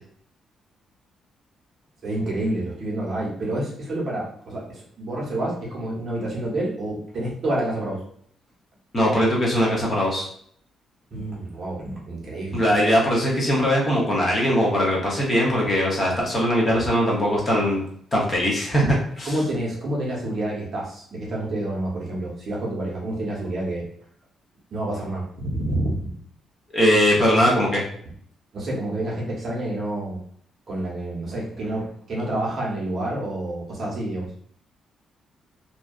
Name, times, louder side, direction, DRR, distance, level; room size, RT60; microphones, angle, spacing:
voice 1, 2.0-8.0 11.1-12.6 19.2-23.8 24.7-26.1 28.5-30.2 30.7-34.3, right 1 dB, 40° right, -4 dB, 0.7 m, -28 dB
voice 2, 8.9-10.3 12.5-17.8 18.1-19.3 26.7-27.9, equal, 25° left, -3 dB, 0.6 m, -20 dB
2.6 x 2.2 x 2.3 m, 0.64 s
cardioid pair, 180°, 0 cm